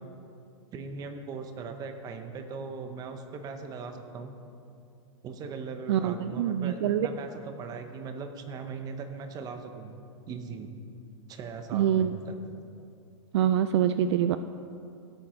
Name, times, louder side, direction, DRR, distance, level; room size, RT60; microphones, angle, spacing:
voice 1, 0.7-4.4 5.2-10.0 10.3-10.7 11.3-12.4, right 5 dB, 25° right, 7 dB, 0.9 m, -39 dB
voice 2, 5.9-7.1 11.7-12.1 13.3-14.4, right 10 dB, 60° right, 11 dB, 0.4 m, -25 dB
16.5 x 8.8 x 3.2 m, 2.5 s
hypercardioid pair, 140°, 16 cm